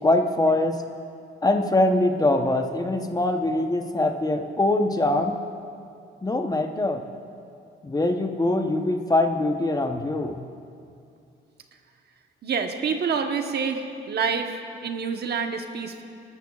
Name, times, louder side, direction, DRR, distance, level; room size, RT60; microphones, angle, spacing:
voice 1, 0.0-0.8 1.4-5.4 6.2-7.0 7.8-10.4, left 2 dB, 20° left, 5 dB, 0.8 m, -23 dB
voice 2, 12.4-16.0, right 5 dB, 55° right, 5 dB, 1.1 m, -27 dB
21.5 x 12.5 x 2.4 m, 2.5 s
cardioid pair, 90°, 20 cm